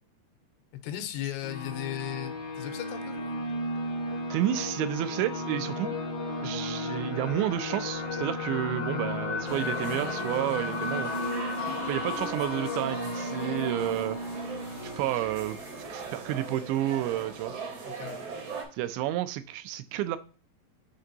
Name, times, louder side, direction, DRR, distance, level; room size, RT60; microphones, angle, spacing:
voice 1, 0.8-3.2 17.8-18.3, left 12 dB, 85° left, 8 dB, 2.8 m, -36 dB
sound 1, 1.4-16.8, left 2 dB, 65° left, 1.2 m, -34 dB
voice 2, 4.3-6.0 6.4-11.1 11.9-14.2 14.8-15.6 15.9-17.5 18.7-20.2, right 13 dB, 85° right, 12 dB, 2.8 m, -30 dB
sound 2, 9.5-18.6, right 5 dB, 70° right, 1.4 m, -40 dB
9.4 x 3.8 x 2.8 m, 0.38 s
omnidirectional pair, 5.0 m